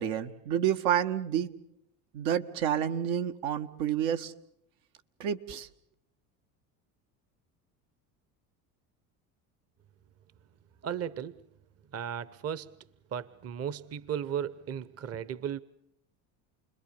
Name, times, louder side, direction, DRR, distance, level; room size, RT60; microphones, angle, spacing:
voice 1, 0.0-1.5 2.1-4.3 5.2-5.7, right 9 dB, 80° right, 1.8 m, -29 dB
voice 2, 10.8-11.4 11.9-12.8 13.1-15.6, right 9 dB, 35° right, 1.0 m, -35 dB
29.5 x 21.5 x 6.9 m
supercardioid pair, 95°, 42 cm